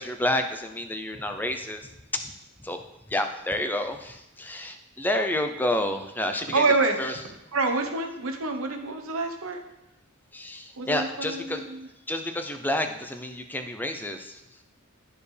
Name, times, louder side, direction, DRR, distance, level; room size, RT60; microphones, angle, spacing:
voice 1, 0.0-2.2 2.6-2.8 3.1-6.6 7.0-7.2 10.3-11.6 12.1-14.4, left 1 dB, 10° left, 6 dB, 0.5 m, -29 dB
voice 2, 6.5-7.0 7.5-9.6 10.8-11.9, right 3 dB, 65° right, 4 dB, 1.0 m, -26 dB
12.0 x 4.7 x 3.3 m, 0.91 s
head